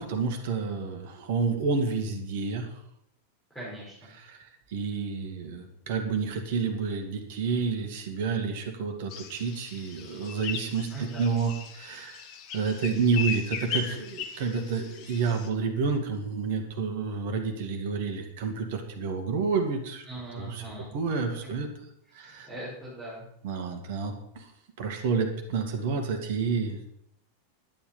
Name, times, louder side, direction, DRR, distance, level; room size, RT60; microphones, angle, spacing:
voice 1, 0.0-2.7 4.2-12.2 12.5-20.0 20.4-20.6 20.9-21.7 22.1-22.5 23.4-24.5 24.8-26.9, right 5 dB, 50° right, 5 dB, 2.1 m, -29 dB
voice 2, 3.5-4.1 10.9-11.3 20.0-21.0 21.4-21.5 22.2-23.3, right 1 dB, ahead, -9 dB, 6.0 m, -40 dB
sound 1, 9.1-15.5, left 7 dB, 40° left, 1.4 m, -38 dB
11.0 x 10.5 x 5.5 m, 0.74 s
figure-of-eight pair, 90°, 0 cm